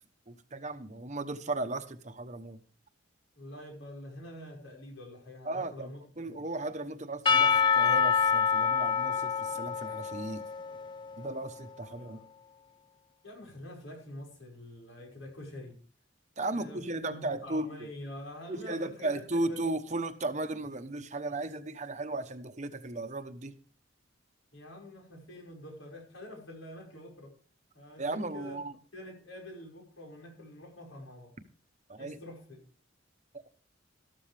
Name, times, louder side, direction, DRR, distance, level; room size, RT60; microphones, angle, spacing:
voice 1, 0.3-2.6 5.4-10.4 11.2-12.2 16.4-17.7 18.5-23.5 28.0-28.7 31.9-32.2, right 2 dB, 35° right, 9 dB, 1.0 m, -36 dB
voice 2, 3.4-6.4 11.9-12.3 13.2-15.8 16.5-19.8 24.5-27.3 27.7-28.6 28.9-31.3 32.0-32.6, left 1 dB, 85° left, 1 dB, 5.5 m, -46 dB
Percussion / Church bell, 7.3-11.6, left 6 dB, 25° left, 0.7 m, -27 dB
13.5 x 13.0 x 3.4 m, 0.39 s
head